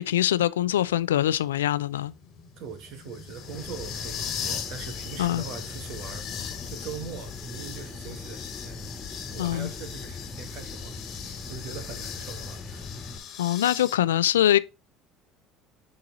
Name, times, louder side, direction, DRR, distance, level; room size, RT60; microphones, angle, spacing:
voice 1, 0.0-2.1 5.2-5.4 9.4-9.7 13.4-14.6, left 12 dB, 85° left, 0.4 m, -23 dB
sound 1, 0.9-13.9, left 8 dB, 55° left, 1.4 m, -39 dB
voice 2, 2.6-6.4 6.7-8.8 9.3-11.2 11.5-12.9, right 6 dB, 60° right, 1.5 m, -41 dB
sound 2, 3.4-13.2, left 3 dB, 20° left, 1.7 m, -40 dB
6.7 x 3.9 x 3.9 m
hypercardioid pair, 70°, 0 cm